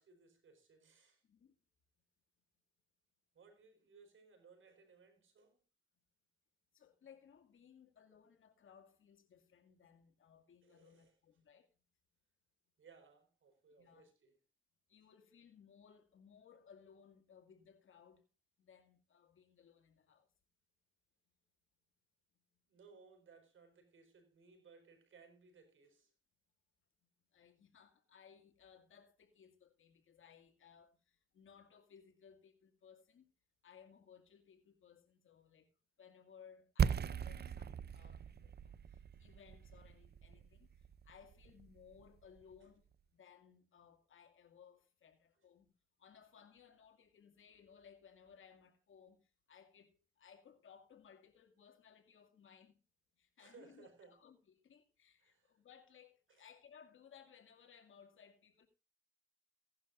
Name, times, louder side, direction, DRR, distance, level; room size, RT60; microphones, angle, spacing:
voice 1, 0.0-1.2 3.3-5.6 10.6-11.1 12.8-14.4 22.6-26.1 35.5-35.7 38.0-38.1 53.4-54.2 55.2-55.6 56.3-56.4, right 5 dB, 80° right, 5.1 m, -63 dB
voice 2, 6.7-11.7 13.8-14.1 14.9-18.3 18.6-20.3 27.3-33.3 33.6-35.7 36.0-40.7 41.0-42.8 43.1-45.7 46.0-49.2 49.5-52.8 53.2-58.7, left 7 dB, 85° left, 2.4 m, -63 dB
sound 1, 36.8-42.5, right 7 dB, 55° right, 0.6 m, -39 dB
17.5 x 11.5 x 2.6 m
cardioid pair, 60°, 20 cm